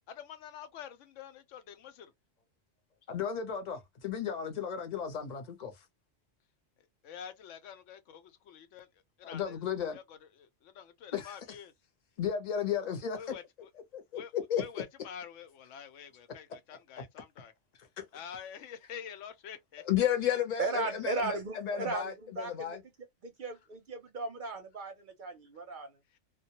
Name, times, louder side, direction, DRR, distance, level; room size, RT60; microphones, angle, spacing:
voice 1, 0.1-2.1 7.0-8.9 9.2-9.6 9.9-11.7 13.1-13.7 14.1-14.3 14.6-17.5 18.1-19.8 20.8-20.9 26.1-26.2, left 8 dB, 90° left, 1.0 m, -47 dB
voice 2, 3.1-5.7 9.2-10.0 11.1-11.4 12.2-13.2 13.9-14.6 17.0-17.1 18.0-18.1 19.9-22.8, left 9 dB, 45° left, 0.7 m, -33 dB
voice 3, 20.6-22.8 23.2-26.0, right 3 dB, 55° right, 0.6 m, -36 dB
2.2 x 2.1 x 2.8 m
omnidirectional pair, 1.2 m